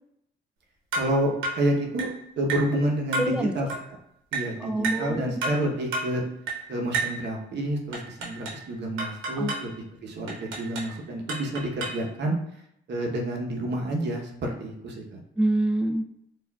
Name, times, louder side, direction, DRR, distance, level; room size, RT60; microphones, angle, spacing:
sound 1, 0.9-1.2 1.4-1.7 2.0-2.2 2.5-2.7 3.1-3.4 3.7-3.9 4.3-4.5 4.8-5.1 5.4-5.6 5.9-6.1 6.5-6.7 6.9-7.2 7.9-8.6 9.0-9.7 10.3-10.9 11.3-12.1, right 3 dB, 85° right, 1.0 m, -31 dB
voice 1, 1.0-2.1 2.4-3.7 4.3-6.2 6.7-12.4 12.9-15.2, right 1 dB, 60° right, 0 dB, 0.9 m, -29 dB
voice 2, 3.2-3.5 4.6-5.4 9.4-9.5 15.4-16.0, right 1 dB, 5° right, 4 dB, 0.4 m, -26 dB
4.5 x 2.5 x 2.2 m, 0.75 s
cardioid pair, 90°, 20 cm